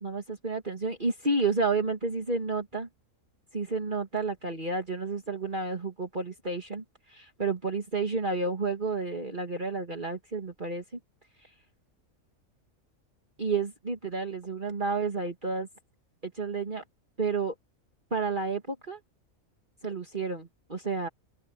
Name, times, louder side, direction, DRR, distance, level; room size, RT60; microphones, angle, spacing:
voice 1, 0.0-2.9 3.5-10.8 11.4-11.5 13.4-15.7 16.2-16.8 17.2-17.5 18.1-19.0 19.8-21.1, right 3 dB, 35° right, 2.5 m, -31 dB
open air
omnidirectional pair, 1.5 m